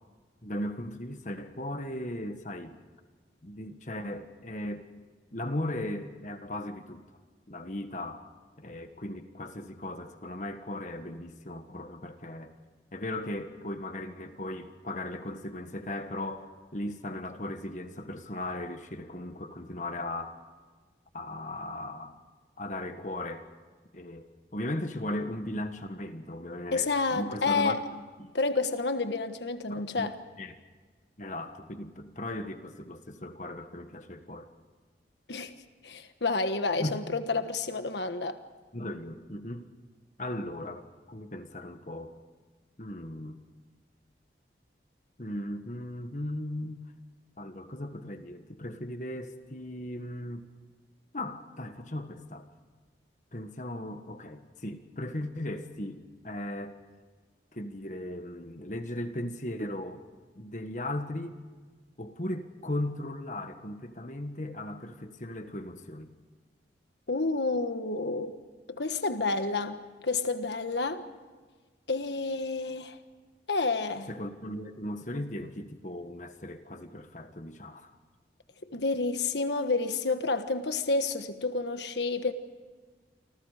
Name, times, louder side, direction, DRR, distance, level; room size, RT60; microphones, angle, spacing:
voice 1, 0.4-2.7 3.4-4.8 5.3-7.0 7.5-8.2 8.6-12.5 12.9-20.4 21.1-22.2 22.6-23.4 23.9-27.8 28.2-28.3 29.7-30.1 30.4-30.5 31.2-34.5 36.8-37.0 38.7-39.7 40.2-42.2 42.8-43.4 45.2-46.9 47.4-50.5 51.1-52.4 53.3-56.8 57.5-60.0 60.4-61.4 62.0-66.1 74.1-77.9, left 1 dB, 45° left, 7 dB, 1.6 m, -37 dB
voice 2, 26.7-27.8 28.3-30.1 35.3-35.5 35.8-38.4 67.1-68.3 68.7-71.0 71.9-73.0 73.5-74.1 78.7-82.3, left 3 dB, 80° left, 8 dB, 1.4 m, -29 dB
29.5 x 25.5 x 5.0 m, 1.4 s
head